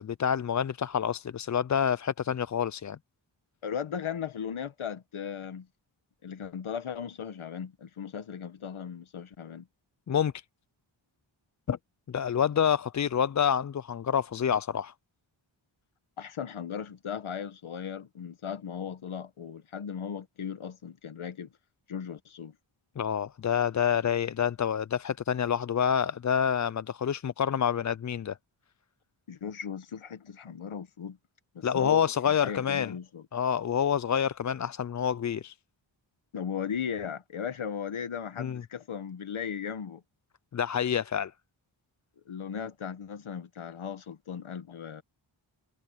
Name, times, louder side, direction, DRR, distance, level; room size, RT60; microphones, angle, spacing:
voice 1, 0.0-3.0 10.1-10.3 11.7-11.8 12.1-14.9 23.0-28.4 31.6-32.9 33.3-35.5 38.4-38.6 40.5-41.3, left 8 dB, 40° left, 0.4 m, -27 dB
voice 2, 3.6-5.7 6.2-9.7 16.2-21.5 21.9-22.5 29.3-31.2 31.5-33.2 36.3-40.0 42.2-45.0, left 7 dB, 85° left, 1.4 m, -37 dB
cardioid pair, 55°, 48 cm